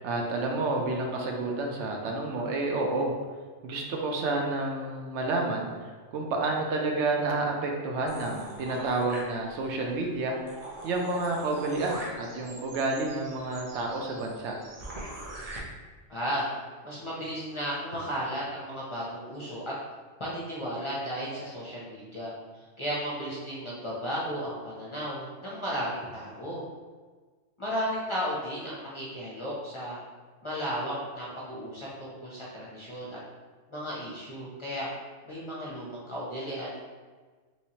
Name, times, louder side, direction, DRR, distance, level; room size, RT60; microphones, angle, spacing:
voice 1, 0.0-3.1 3.6-10.3 10.8-14.6, right 2 dB, 75° right, 1 dB, 0.9 m, -30 dB
sound 1, 8.1-9.8 10.2-10.3 10.5-15.6, right 1 dB, 45° right, 0.5 m, -43 dB
voice 2, 16.1-16.4 16.8-19.6 20.2-26.6 27.6-30.0 30.4-33.2 33.7-34.9 35.2-36.8, equal, 30° left, -7 dB, 0.6 m, -34 dB
3.1 x 3.1 x 2.8 m, 1.4 s
omnidirectional pair, 1.2 m